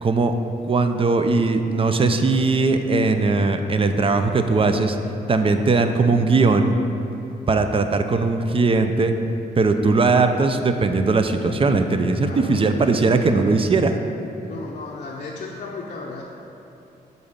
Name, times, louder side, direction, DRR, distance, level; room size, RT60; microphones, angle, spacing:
voice 1, 0.0-0.3 0.7-5.0 5.3-6.7 7.5-9.1 9.6-14.0, right 3 dB, 35° right, 7 dB, 0.4 m, -19 dB
voice 2, 12.2-12.7 12.9-13.1 14.4-16.2, left 3 dB, 45° left, -2 dB, 0.6 m, -35 dB
7.1 x 4.0 x 5.1 m, 2.9 s
cardioid pair, 95°, 17 cm